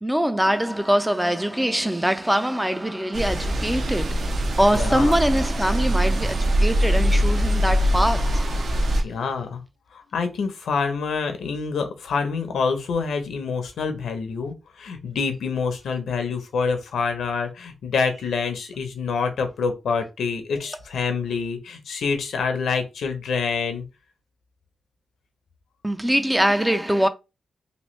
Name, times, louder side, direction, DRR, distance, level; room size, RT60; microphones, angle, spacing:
voice 1, 0.0-8.7 25.8-27.1, equal, 5° right, 0.3 m, -23 dB
sound 1, 3.1-9.0, equal, 55° right, 0.6 m, -22 dB
voice 2, 4.7-5.2 9.0-9.6 9.9-23.8, left 5 dB, 85° left, 0.8 m, -26 dB
3.0 x 2.9 x 3.1 m
wide cardioid pair, 135°, 0 cm